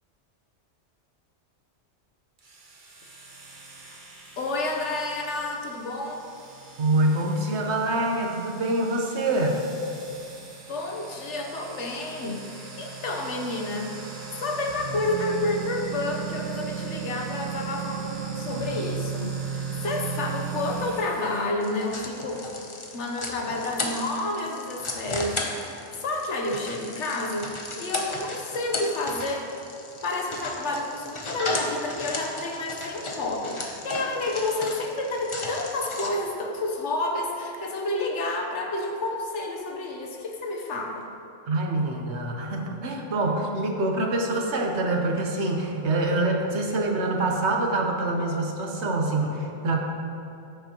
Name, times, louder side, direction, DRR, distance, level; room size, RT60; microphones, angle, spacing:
sound 1, 2.4-21.5, right 6 dB, 45° right, 1.1 m, -37 dB
voice 1, 4.4-6.2 10.7-14.0 14.3-22.4 22.9-29.5 30.0-41.1, left 2 dB, 75° left, 2 dB, 1.3 m, -30 dB
voice 2, 6.8-9.6 41.5-49.8, right 2 dB, 70° right, 1 dB, 1.3 m, -25 dB
sound 2, 21.6-36.1, left 2 dB, 30° left, 0.8 m, -35 dB
13.5 x 7.1 x 3.0 m, 2.9 s
omnidirectional pair, 1.2 m